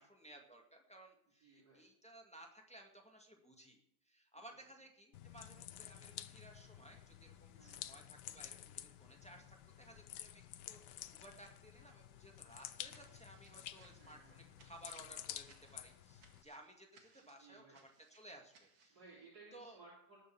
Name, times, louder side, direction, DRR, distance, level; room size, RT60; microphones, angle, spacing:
voice 1, 0.0-17.8 18.1-19.0 19.5-19.8, right 1 dB, 5° left, 1 dB, 1.9 m, -59 dB
voice 2, 1.4-1.8 4.5-4.6 7.5-8.0 14.0-14.4 17.2-17.8 18.9-20.2, right 3 dB, 50° right, -5 dB, 4.0 m, -61 dB
sound 1, 5.1-16.4, left 12 dB, 70° left, 1.2 m, -52 dB
sound 2, 12.9-19.0, right 4 dB, 80° right, 2.7 m, -68 dB
18.5 x 6.7 x 7.1 m, 0.74 s
omnidirectional pair, 2.1 m